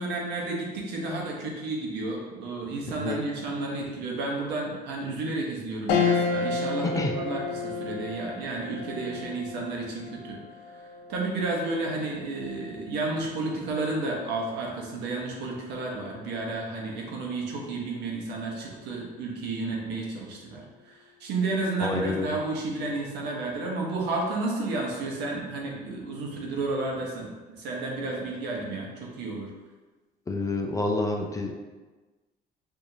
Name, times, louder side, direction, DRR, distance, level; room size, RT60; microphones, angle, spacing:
voice 1, 0.0-10.4 11.1-20.9 21.2-28.9 29.2-29.5, right 2 dB, 85° right, -1 dB, 0.9 m, -31 dB
sound 1, 5.9-15.5 16.0-16.1 17.4-17.8, left 5 dB, 90° left, 0.5 m, -33 dB
voice 2, 21.8-22.4 30.3-31.5, left 2 dB, 20° left, 1 dB, 0.4 m, -28 dB
4.6 x 2.7 x 2.7 m, 1.3 s
cardioid pair, 110°, 17 cm